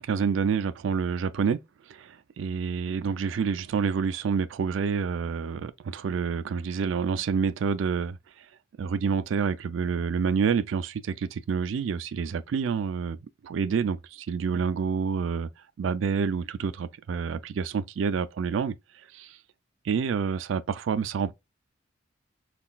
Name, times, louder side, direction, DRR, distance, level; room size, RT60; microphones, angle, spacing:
voice 1, 0.0-1.6 1.9-8.2 8.8-13.2 13.4-15.5 15.8-18.7 19.1-19.4 19.8-21.3, right 6 dB, 80° right, 0.3 m, -28 dB
3.8 x 2.3 x 2.3 m
head